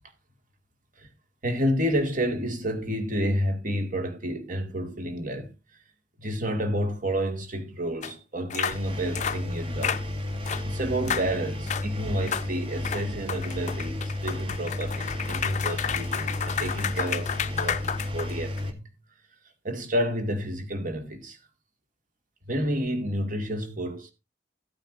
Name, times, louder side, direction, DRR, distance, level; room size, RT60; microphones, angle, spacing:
voice 1, 1.4-5.5 6.2-10.0 10.6-18.8 19.6-21.4 22.5-24.1, equal, 45° right, 2.2 m, -30 dB
sound 1, 8.0-8.1 8.5-8.8 9.2-9.4 9.8-10.0 10.5-10.7 11.1-11.3 11.7-11.9 12.3-12.5 12.8-18.6, left 8 dB, 40° left, 0.5 m, -31 dB
Engine, 8.7-18.7, left 1 dB, 30° right, 1.9 m, -32 dB
15.5 x 9.1 x 2.6 m
head